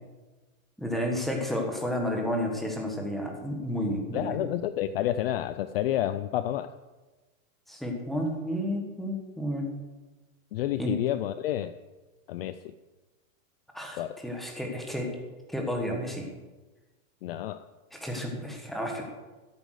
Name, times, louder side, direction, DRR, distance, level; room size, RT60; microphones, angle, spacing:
voice 1, 0.8-4.4 7.7-9.8 10.8-10.9 13.7-15.1 15.5-16.3 17.9-19.0, equal, ahead, 1 dB, 1.3 m, -31 dB
voice 2, 4.1-6.7 10.5-11.8 12.3-12.6 14.0-14.2 17.2-17.7, left 12 dB, 50° left, 13 dB, 0.4 m, -29 dB
13.5 x 8.2 x 6.5 m, 1.2 s
supercardioid pair, 170°, 41 cm